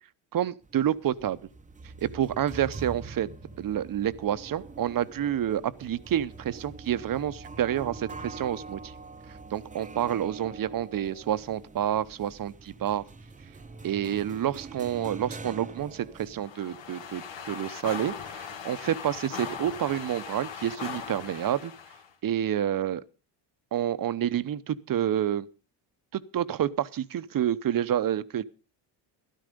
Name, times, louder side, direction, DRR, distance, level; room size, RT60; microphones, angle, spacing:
voice 1, 0.3-1.4 2.0-3.3 3.6-8.9 9.3-13.0 13.8-21.7 22.2-23.0 23.7-25.5 26.1-28.4, right 10 dB, 45° right, 15 dB, 0.9 m, -29 dB
sound 1, 0.6-16.5, right 3 dB, 15° right, 0.8 m, -44 dB
sound 2, 16.4-22.1, left 7 dB, 70° left, 2.2 m, -39 dB
13.0 x 12.0 x 5.2 m, 0.34 s
cardioid pair, 85°, 45 cm